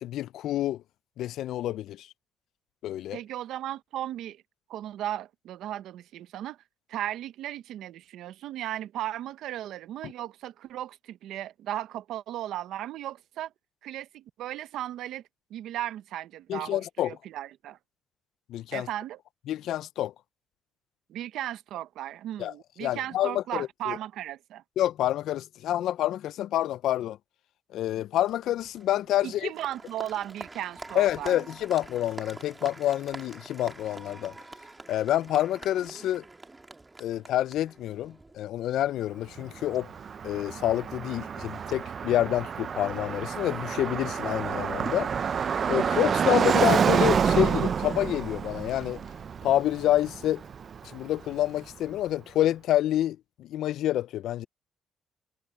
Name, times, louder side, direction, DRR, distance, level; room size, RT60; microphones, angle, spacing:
voice 1, 0.0-0.8 1.2-2.1 2.8-3.2 10.0-10.1 16.5-17.2 18.5-18.9 19.5-20.1 22.4-22.5 22.8-24.0 24.8-27.2 27.7-29.5 30.9-34.3 34.9-36.2 37.0-39.9 40.2-45.1 45.7-49.0 49.4-50.4 50.9-54.5, left 13 dB, 80° left, 0.4 m, -28 dB
voice 2, 3.1-4.4 4.7-6.6 6.9-13.5 13.8-15.2 15.5-17.8 18.7-19.2 21.1-24.6 29.2-31.4, right 12 dB, 85° right, 0.8 m, -36 dB
Applause, 28.3-38.4, right 2 dB, 20° right, 1.9 m, -46 dB
Car passing by, 39.4-51.4, right 7 dB, 50° right, 0.5 m, -28 dB
cardioid pair, 90°, 0 cm